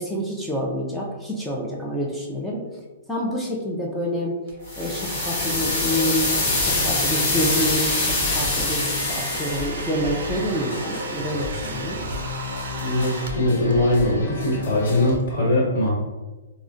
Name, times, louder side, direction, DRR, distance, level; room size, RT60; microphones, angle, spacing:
voice 1, 0.0-2.6 3.1-4.4 4.8-6.3 6.6-12.0, equal, 5° left, -4 dB, 0.4 m, -27 dB
Domestic sounds home sounds, 4.5-13.7, right 3 dB, 70° right, 0.4 m, -34 dB
sound 1, 4.7-9.7, left 2 dB, 35° left, 0.9 m, -24 dB
sound 2, 5.6-15.2, left 2 dB, 80° left, 0.6 m, -34 dB
voice 2, 12.8-15.9, left 1 dB, 60° left, -6 dB, 1.2 m, -21 dB
3.7 x 2.1 x 2.5 m, 1.2 s
hypercardioid pair, 160°, 0 cm